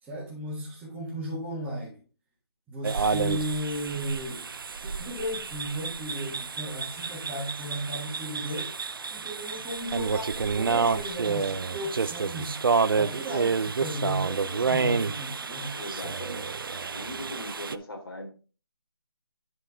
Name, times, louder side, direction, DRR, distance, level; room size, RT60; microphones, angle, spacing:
voice 1, 0.0-2.0 2.7-4.5 4.8-8.7 9.1-12.6 12.9-15.8, right 1 dB, 5° right, 1.6 m, -35 dB
sound 1, 2.8-17.8, right 5 dB, 55° right, 0.6 m, -29 dB
voice 2, 15.7-18.3, left 1 dB, 55° left, 3.2 m, -40 dB
11.5 x 4.7 x 3.6 m
figure-of-eight pair, 170°, 14 cm